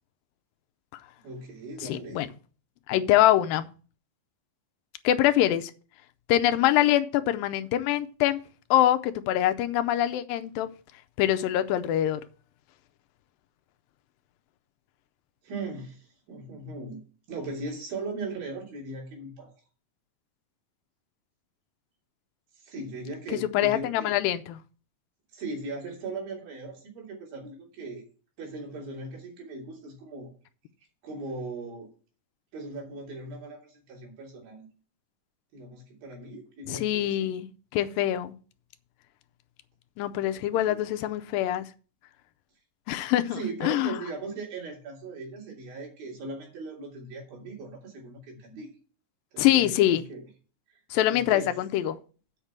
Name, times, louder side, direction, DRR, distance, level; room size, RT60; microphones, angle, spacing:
voice 1, 1.2-2.2 15.4-19.5 22.5-24.2 25.3-28.0 28.4-30.3 31.0-31.9 32.5-34.7 35.5-37.3 40.7-40.9 43.3-48.7 49.3-50.3 50.7-50.8 51.1-51.5, right 3 dB, 85° right, 4.8 m, -39 dB
voice 2, 1.8-2.3 2.9-3.7 5.0-5.7 6.3-8.4 8.7-10.7 11.2-12.2 23.4-24.6 36.7-37.5 37.7-38.3 40.0-41.7 42.9-44.0 49.4-50.1 50.9-52.0, left 13 dB, 85° left, 2.4 m, -24 dB
8.1 x 5.4 x 7.3 m
omnidirectional pair, 4.0 m